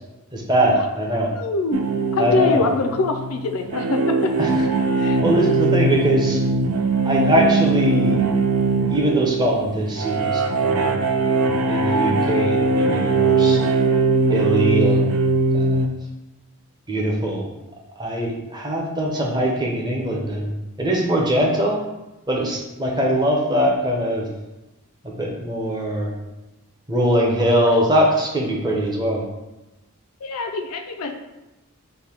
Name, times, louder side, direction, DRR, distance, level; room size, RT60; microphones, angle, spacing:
voice 1, 0.3-1.3 2.2-2.6 4.4-4.7 5.0-6.4 7.0-8.2 8.9-11.0 11.7-13.6 14.3-15.9 16.9-17.4 18.0-21.8 22.3-24.3 25.0-26.1 26.9-29.2, equal, 20° right, -2 dB, 0.7 m, -22 dB
voice 2, 1.2-1.8 2.1-4.5 5.0-5.4 30.2-31.1, left 3 dB, 80° left, 5 dB, 0.5 m, -24 dB
sound 1, 1.7-15.9, right 3 dB, 70° right, 0.4 m, -20 dB
5.3 x 2.2 x 4.3 m, 1.0 s
head